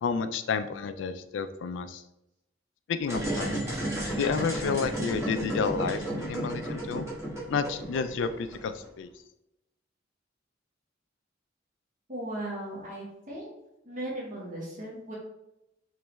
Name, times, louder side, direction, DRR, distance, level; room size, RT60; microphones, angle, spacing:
voice 1, 0.0-2.0 2.9-3.6 4.2-7.1 7.5-9.1, left 5 dB, 75° left, 10 dB, 0.3 m, -30 dB
sound 1, 3.0-8.9, right 1 dB, 15° right, 1.1 m, -33 dB
voice 2, 12.1-13.5 13.8-15.2, right 1 dB, 45° right, -4 dB, 1.0 m, -37 dB
3.4 x 3.1 x 3.0 m, 0.88 s
head